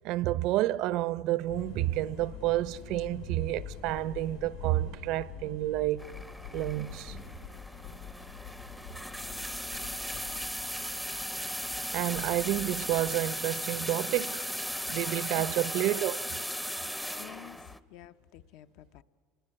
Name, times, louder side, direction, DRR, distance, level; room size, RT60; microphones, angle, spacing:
voice 1, 0.0-6.1 6.5-7.2 11.9-14.4 14.9-16.3, right 15 dB, 60° right, 0.6 m, -30 dB
sound 1, 1.5-13.2, left 8 dB, 85° left, 6.6 m, -46 dB
sound 2, 6.0-17.8, equal, 5° left, 0.6 m, -37 dB
voice 2, 15.4-16.0 17.0-19.0, left 13 dB, 70° left, 0.7 m, -51 dB
29.0 x 21.5 x 8.7 m
cardioid pair, 150°, 0 cm